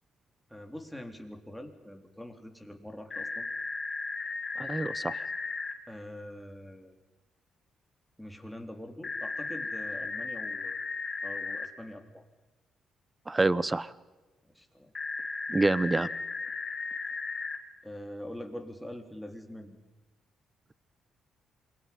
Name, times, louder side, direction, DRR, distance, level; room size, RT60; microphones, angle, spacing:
voice 1, 0.5-3.5 5.9-7.0 8.2-10.8 11.2-12.2 14.5-14.9 17.8-19.8, left 1 dB, ahead, 4 dB, 3.8 m, -44 dB
sound 1, 3.1-5.7 9.0-11.7 14.9-17.6, left 4 dB, 35° left, 3.9 m, -35 dB
voice 2, 4.6-5.2 13.3-13.9 15.5-16.1, right 2 dB, 20° right, 18 dB, 1.0 m, -27 dB
28.0 x 23.0 x 5.5 m, 1.2 s
cardioid pair, 90°, 0 cm